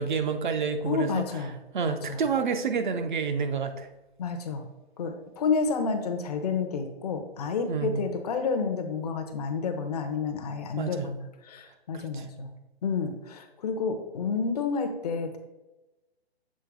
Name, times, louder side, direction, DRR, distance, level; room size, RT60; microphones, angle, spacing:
voice 1, 0.0-1.2 1.7-3.9 7.7-8.0 10.8-11.1 12.1-12.2, right 5 dB, 50° right, 7 dB, 0.6 m, -28 dB
voice 2, 0.8-1.6 1.9-2.2 4.2-4.7 5.0-12.5 12.8-15.4, left 5 dB, 40° left, 6 dB, 0.7 m, -30 dB
7.5 x 3.2 x 4.6 m, 1.0 s
figure-of-eight pair, 135°, 32 cm